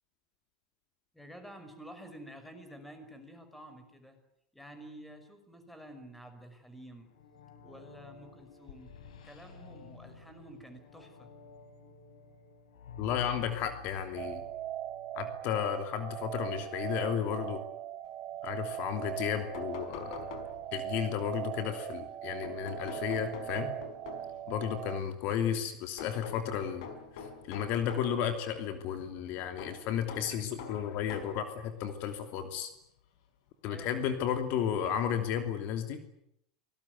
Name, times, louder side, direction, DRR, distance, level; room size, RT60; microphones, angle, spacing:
voice 1, 1.1-4.2 4.5-7.1 7.6-8.9 9.2-11.3 33.6-34.0, right 1 dB, 5° left, 8 dB, 5.7 m, -50 dB
sound 1, 6.9-16.8 19.9-21.8, left 6 dB, 90° left, 4.8 m, -52 dB
voice 2, 13.0-14.4 15.1-17.6 18.4-20.3 20.7-23.7 24.5-26.9 27.1-32.7 33.6-36.0, left 9 dB, 55° left, 7 dB, 3.0 m, -33 dB
sound 2, 14.2-25.0, right 12 dB, 40° right, 1.2 m, -40 dB
sound 3, 19.2-20.9 22.4-24.5 26.0-28.2 29.6-31.5 32.3-32.4 33.7-33.8 34.2-34.3, left 5 dB, 70° left, 5.2 m, -45 dB
25.5 x 19.5 x 9.5 m, 0.77 s
supercardioid pair, 120°, 4 cm